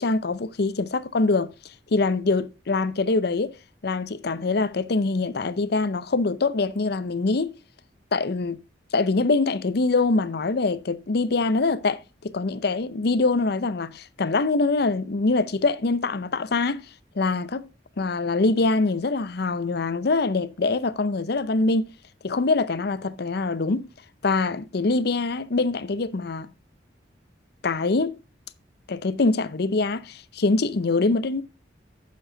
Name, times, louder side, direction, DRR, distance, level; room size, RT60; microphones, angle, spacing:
voice 1, 0.0-1.5 1.9-3.5 3.8-7.5 8.1-8.6 8.9-16.8 17.2-17.7 18.0-21.9 22.2-23.9 24.2-26.5 27.6-28.2 28.9-31.4, left 3 dB, 60° left, 0.6 m, -24 dB
9.0 x 7.1 x 3.8 m
head